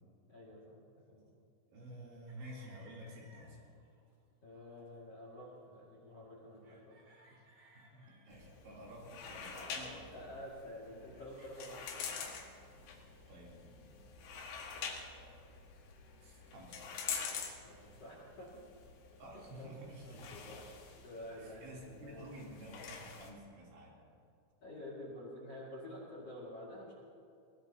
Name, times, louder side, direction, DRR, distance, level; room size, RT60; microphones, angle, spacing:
voice 1, 0.3-0.8 1.1-1.3 4.4-7.0 10.1-12.1 17.6-18.6 19.6-22.2 24.6-26.9, left 1 dB, 45° left, -5 dB, 2.4 m, -49 dB
voice 2, 1.7-3.6 7.3-7.5 7.7-10.3 13.3-13.9 14.8-15.5 16.2-16.8 19.2-20.3 21.4-24.0, right 1 dB, 70° right, -4 dB, 5.5 m, -51 dB
sound 1, 2.3-4.2 4.6-5.0 5.5-6.2 6.6-12.2, right 2 dB, 40° right, 2.6 m, -65 dB
sound 2, 8.3-23.3, left 6 dB, 80° left, 4.2 m, -47 dB
22.0 x 19.0 x 2.9 m, 2.5 s
omnidirectional pair, 5.6 m